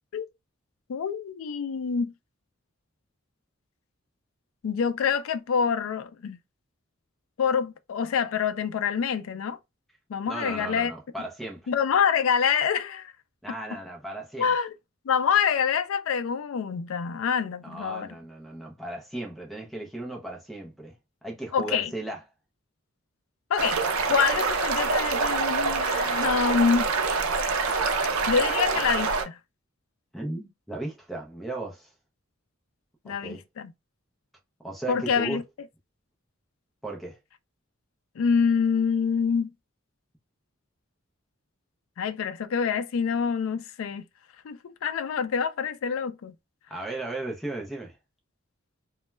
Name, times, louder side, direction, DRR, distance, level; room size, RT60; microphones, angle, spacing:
voice 1, 0.9-2.1 4.6-6.4 7.4-9.6 10.1-10.9 11.7-13.1 14.4-14.7 15.1-18.1 21.5-21.9 23.5-23.8 24.1-26.9 28.3-29.4 33.0-33.7 34.9-35.4 38.2-39.5 42.0-44.0 44.4-46.3, left 6 dB, 80° left, 0.3 m, -26 dB
voice 2, 10.3-11.6 13.4-14.5 17.5-20.9 21.2-22.2 30.1-31.9 33.1-33.4 34.6-35.4 36.8-37.2 46.7-48.0, right 2 dB, ahead, 0.4 m, -36 dB
sound 1, 23.6-29.3, right 4 dB, 90° right, 0.5 m, -26 dB
2.2 x 2.0 x 3.1 m
head